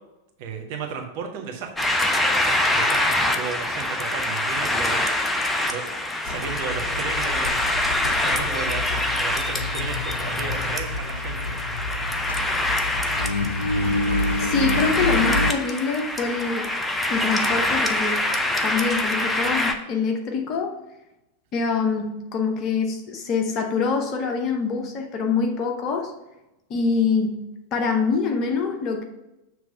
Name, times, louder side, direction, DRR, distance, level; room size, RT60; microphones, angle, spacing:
voice 1, 0.4-5.0 5.5-7.6 8.2-11.6, right 6 dB, 50° right, 3 dB, 1.0 m, -34 dB
sound 1, 1.8-19.7, left 1 dB, 10° left, 0.6 m, -25 dB
Engine, 6.3-15.5, left 2 dB, 70° left, 0.4 m, -28 dB
voice 2, 14.4-16.7 17.1-18.3 18.6-20.8 21.5-26.1 26.7-27.5 27.7-29.0, left 5 dB, 35° left, 4 dB, 0.9 m, -25 dB
7.1 x 3.2 x 5.1 m, 0.95 s
figure-of-eight pair, 90°, 0 cm